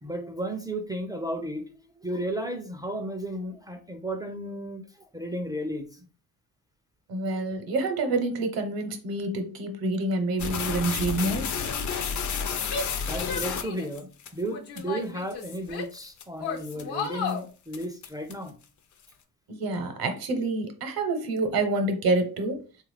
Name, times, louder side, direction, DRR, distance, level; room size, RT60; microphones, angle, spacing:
voice 1, 0.0-6.1 7.3-7.5 12.2-12.3 13.0-18.5, right 1 dB, 10° right, 0.3 m, -34 dB
voice 2, 7.1-11.5 19.5-22.6, right 2 dB, 65° right, 0.8 m, -27 dB
sound 1, 10.4-14.3 14.8-14.9 15.4-15.5 15.9-16.2 16.7-17.0 17.3-17.4 17.7-18.5, left 6 dB, 50° left, 0.5 m, -31 dB
Female speech woman speaking / Yell, 12.7-14.0 14.5-16.0 16.4-17.5, left 5 dB, 80° left, 0.9 m, -34 dB
3.7 x 2.4 x 3.2 m
cardioid pair, 140°, 38 cm